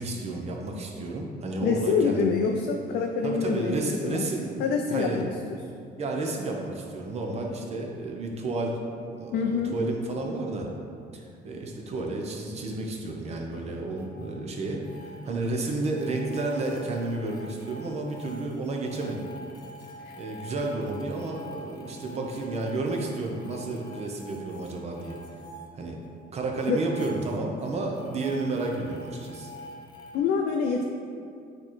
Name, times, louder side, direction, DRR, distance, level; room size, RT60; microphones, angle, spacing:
voice 1, 0.0-2.2 3.2-5.3 6.0-10.7 11.1-19.3 20.2-25.2 25.7-26.0 26.3-29.5, right 2 dB, 40° right, 1 dB, 0.9 m, -31 dB
voice 2, 1.6-3.8 4.0-4.2 4.6-5.3 9.3-9.7 20.0-20.2 26.7-26.8 30.1-30.8, left 5 dB, 75° left, 2 dB, 0.5 m, -26 dB
sound 1, 14.0-14.3 14.6-15.5 15.9-26.3 26.5-30.2, left 1 dB, 25° left, 0.8 m, -47 dB
8.5 x 3.2 x 4.2 m, 2.4 s
cardioid pair, 150°, 18 cm